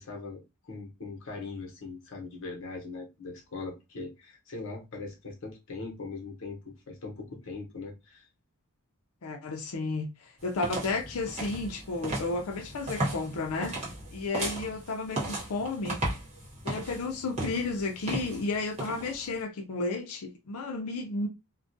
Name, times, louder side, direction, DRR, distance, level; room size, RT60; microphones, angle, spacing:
voice 1, 0.0-8.3, left 3 dB, 60° left, 0.9 m, -41 dB
voice 2, 9.2-10.1 10.4-13.7 14.1-16.0 16.6-21.3, left 3 dB, 75° left, 0.5 m, -32 dB
sound 1, 10.4-19.4, right 1 dB, 30° right, 1.0 m, -36 dB
2.3 x 2.1 x 2.6 m
head